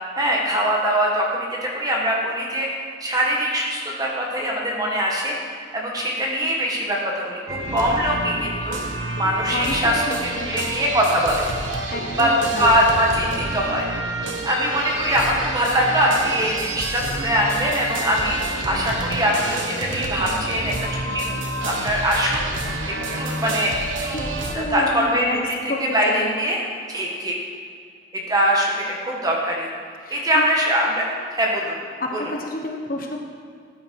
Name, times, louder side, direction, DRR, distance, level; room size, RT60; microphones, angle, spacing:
voice 1, 0.2-2.7 3.0-8.8 9.1-11.5 12.2-12.3 12.6-13.9 14.4-18.4 18.6-21.3 21.7-22.4 23.1-23.7 24.0-25.4 25.9-26.6 26.9-27.4 28.3-29.7 30.1-31.0 31.3-31.8 32.1-32.2, equal, 20° right, -2 dB, 1.8 m, -22 dB
sound 1, 7.5-24.5, right 2 dB, 90° right, 1.4 m, -29 dB
voice 2, 9.5-10.5 11.9-12.7 24.1-24.2 24.5-25.4 25.7-26.4 30.0-30.4 30.9-31.0 32.0-33.2, left 1 dB, 45° left, 1 dB, 1.2 m, -29 dB
14.5 x 8.9 x 4.8 m, 2.2 s
head